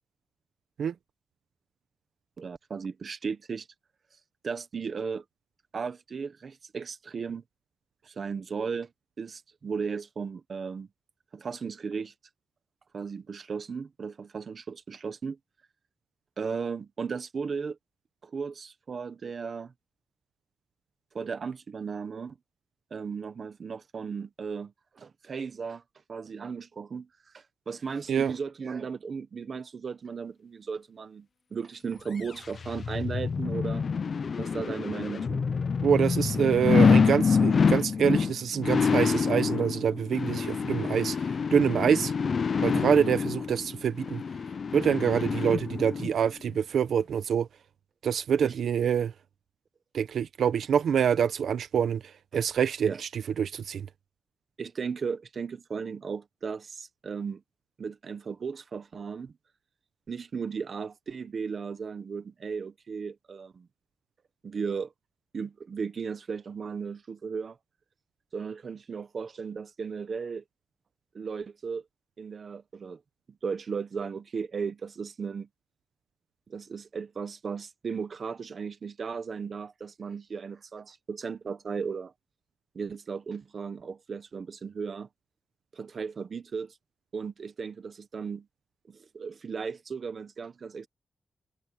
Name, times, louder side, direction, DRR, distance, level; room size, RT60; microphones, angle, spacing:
voice 1, 2.4-3.7 4.4-5.2 5.7-7.4 8.1-8.9 9.2-10.9 11.3-12.1 12.9-15.4 16.4-17.8 18.2-19.7 21.1-22.4 22.9-25.8 26.1-27.1 27.3-33.8 34.4-35.4 42.7-42.8 48.4-48.6 52.8-53.0 54.6-57.4 57.8-59.3 60.1-63.7 64.4-64.9 65.3-67.6 68.3-70.4 71.1-71.8 72.2-73.0 73.4-75.5 76.5-82.1 82.7-85.1 85.7-86.7 87.1-88.5 88.9-90.9, right 5 dB, 45° right, 1.2 m, -36 dB
sound 1, 32.2-46.1 46.5-46.6, left 5 dB, 45° left, 0.5 m, -26 dB
voice 2, 35.8-42.1 42.6-44.2 44.7-47.5 48.0-49.1 49.9-53.9, right 8 dB, 85° right, 0.9 m, -26 dB
wide cardioid pair, 160°, 0 cm